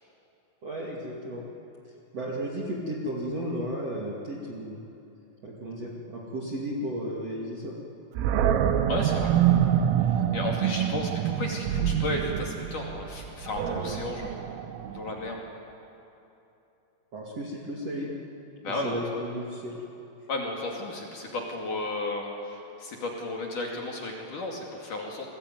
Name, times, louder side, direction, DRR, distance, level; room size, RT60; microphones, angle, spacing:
voice 1, 0.6-1.5 2.1-4.8 5.4-7.8 17.1-18.1 18.7-19.8, equal, 40° right, -3 dB, 2.6 m, -34 dB
Animal, 8.2-15.3, right 9 dB, 85° right, 3.8 m, -26 dB
voice 2, 8.9-9.3 10.1-14.3 14.9-15.4 18.6-19.0 20.3-25.3, left 2 dB, 45° left, -1 dB, 3.5 m, -33 dB
28.5 x 21.0 x 9.4 m, 2.9 s
omnidirectional pair, 5.8 m